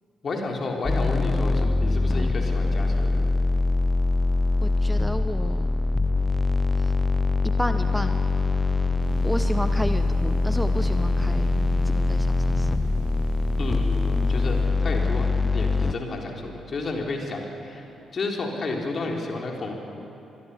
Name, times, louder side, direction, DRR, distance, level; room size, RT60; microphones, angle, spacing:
voice 1, 0.2-3.2 13.6-17.9 18.1-19.7, left 3 dB, 45° left, 1 dB, 4.0 m, -31 dB
sound 1, 0.8-15.9, left 3 dB, 25° left, 0.9 m, -23 dB
voice 2, 4.6-5.8 6.8-6.9 7.6-8.3 9.2-11.5 12.0-12.8, equal, 5° right, 8 dB, 1.1 m, -31 dB
sound 2, 9.0-14.6, right 2 dB, 90° right, 2.5 m, -39 dB
25.0 x 21.0 x 7.1 m, 2.8 s
figure-of-eight pair, 40°, 0 cm